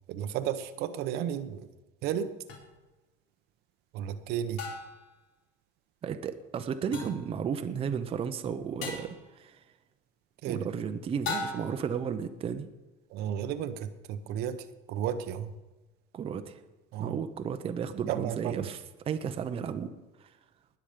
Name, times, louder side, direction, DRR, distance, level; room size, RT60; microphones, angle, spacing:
voice 1, 0.1-1.7 2.0-2.3 3.9-4.6 10.4-10.6 13.1-15.5 16.9-17.2 18.1-18.7, right 9 dB, 60° right, 10 dB, 0.9 m, -33 dB
sound 1, 2.5-2.6 4.6-5.1 6.9-7.3 8.8-9.2 11.2-11.9, left 4 dB, 65° left, 4.2 m, -36 dB
voice 2, 6.0-9.1 9.4-9.6 10.4-12.7 16.1-16.6 17.0-19.9 20.2-20.3, right 7 dB, 30° right, 8 dB, 0.8 m, -33 dB
20.0 x 7.2 x 5.1 m, 1.1 s
cardioid pair, 135°, 18 cm